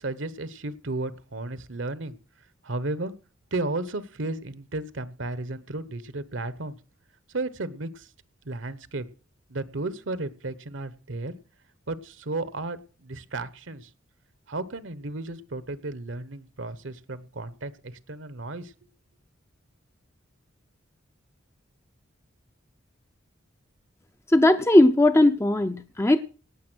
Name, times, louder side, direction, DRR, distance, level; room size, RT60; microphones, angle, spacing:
voice 1, 0.0-2.2 2.6-3.1 3.5-6.8 7.3-8.1 8.4-9.1 9.5-11.4 11.9-13.9 14.5-18.7, right 2 dB, 70° right, 15 dB, 1.1 m, -33 dB
voice 2, 24.3-26.2, left 1 dB, 15° left, 8 dB, 0.5 m, -18 dB
18.0 x 6.9 x 6.3 m, 0.38 s
head